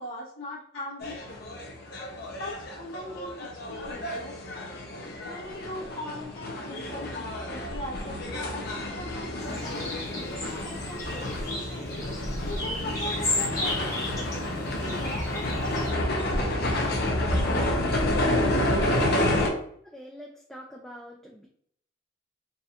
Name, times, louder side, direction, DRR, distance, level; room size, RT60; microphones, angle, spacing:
voice 1, 0.0-1.5 2.4-4.4 5.2-9.9 10.5-12.1 12.5-14.2 14.8-16.6, left 1 dB, 85° left, -9 dB, 1.1 m, -40 dB
sound 1, 1.0-19.5, left 1 dB, 55° left, 0.7 m, -29 dB
sound 2, 9.4-15.9, left 2 dB, 20° left, 1.0 m, -34 dB
voice 2, 19.8-21.5, equal, ahead, -2 dB, 0.3 m, -45 dB
4.0 x 2.5 x 2.8 m, 0.66 s
head